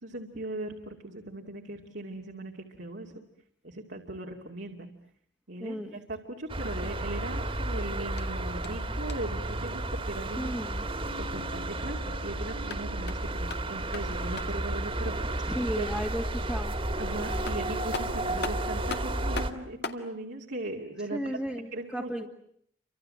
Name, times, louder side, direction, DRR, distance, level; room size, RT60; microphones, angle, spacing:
voice 1, 0.0-3.1 3.6-4.9 5.5-15.9 17.0-21.4 21.7-22.3, right 2 dB, 70° right, 1 dB, 2.5 m, -39 dB
voice 2, 5.6-6.0 10.4-10.8 15.5-16.7 21.1-22.3, equal, ahead, -1 dB, 1.8 m, -34 dB
sound 1, 6.5-19.5, right 1 dB, 30° right, 2.3 m, -32 dB
sound 2, 8.2-9.4 12.5-14.7 17.0-17.1 17.5-20.1, left 4 dB, 65° left, 2.1 m, -40 dB
30.0 x 25.5 x 7.7 m, 0.68 s
head